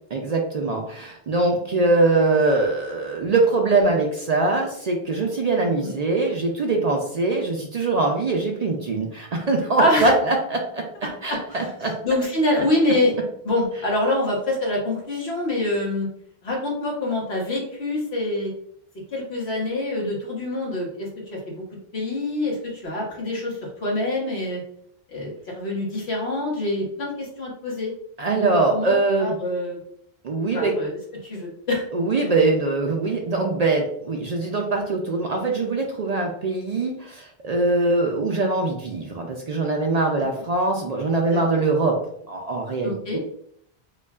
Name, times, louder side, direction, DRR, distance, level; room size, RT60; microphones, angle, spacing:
voice 1, 0.1-10.9 11.2-12.0 28.2-29.4 30.2-30.8 31.9-43.2, right 3 dB, 55° right, 1 dB, 0.5 m, -22 dB
voice 2, 9.8-10.1 11.0-11.1 12.0-13.1 13.4-16.1 16.4-18.5 19.1-21.6 21.9-24.6 25.1-27.9 28.3-29.8 30.5-31.0 31.2-31.8 41.3-41.4 42.8-43.2, left 1 dB, 85° left, -2 dB, 1.4 m, -25 dB
4.9 x 2.3 x 2.3 m, 0.68 s
omnidirectional pair, 1.0 m